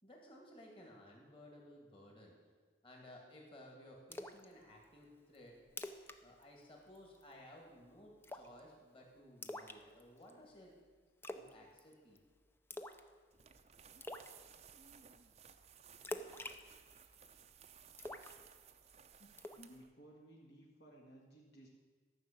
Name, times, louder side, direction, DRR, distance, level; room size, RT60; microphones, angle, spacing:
voice 1, 0.0-2.4 2.8-5.5 6.2-10.7 11.3-12.2, left 1 dB, 30° left, -1 dB, 2.4 m, -57 dB
Splash splatter, 4.1-4.5 4.8-4.9 5.3-5.4 5.7-6.2 6.4-6.6 7.0-7.3 8.2-8.6 9.4-10.3 11.2-11.5 11.8-12.2 12.7-13.1 13.4-13.5 14.0-14.3 16.0-17.3 18.0-18.9 19.4-19.7, left 1 dB, 10° left, 0.5 m, -46 dB
sound 1, 13.3-19.9, right 7 dB, 35° right, 0.6 m, -60 dB
voice 2, 19.2-21.7, right 1 dB, 60° left, -2 dB, 1.7 m, -59 dB
13.5 x 6.3 x 8.7 m, 1.5 s
head